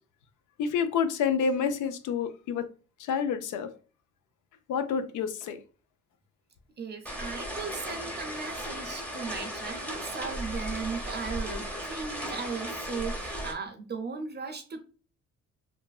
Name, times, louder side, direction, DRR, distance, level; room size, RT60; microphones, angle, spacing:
voice 1, 0.6-2.7 3.0-3.7 4.7-5.6, left 6 dB, 80° left, 0.5 m, -28 dB
voice 2, 6.8-14.8, right 5 dB, 35° right, 0.6 m, -37 dB
sound 1, 7.1-13.5, equal, 5° left, 0.7 m, -36 dB
3.2 x 2.1 x 2.3 m
cardioid pair, 90°, 30 cm